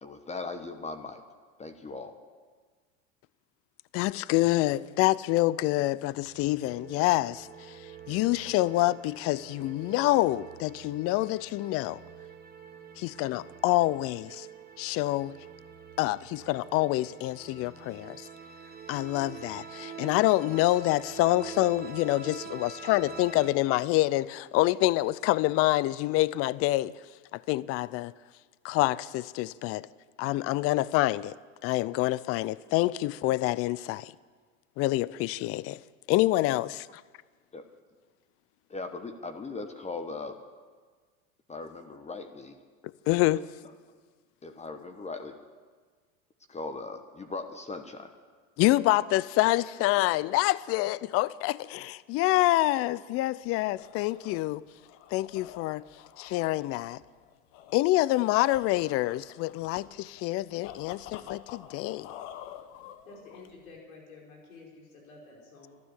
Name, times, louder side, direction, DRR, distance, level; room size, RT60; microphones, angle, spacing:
voice 1, 0.0-1.2 1.6-2.1 37.5-37.7 38.7-40.4 41.5-42.6 43.3-43.4 44.4-45.4 46.5-48.1, left 3 dB, 15° left, 1.1 m, -39 dB
voice 2, 3.9-7.8 8.1-12.0 13.0-14.5 14.8-15.3 16.0-18.3 18.9-26.9 27.3-28.1 28.6-29.9 30.2-31.4 31.6-34.1 34.8-35.8 36.1-37.0 43.1-43.4 48.6-54.6 55.1-55.8 56.2-57.0 57.7-62.1, left 17 dB, 35° left, 0.4 m, -27 dB
sound 1, 6.1-23.5, right 6 dB, 25° right, 1.4 m, -46 dB
sound 2, 53.4-63.8, left 10 dB, 65° left, 1.2 m, -48 dB
voice 3, 63.0-65.8, left 3 dB, 90° left, 4.9 m, -50 dB
12.5 x 12.0 x 8.1 m
hypercardioid pair, 105°, 41 cm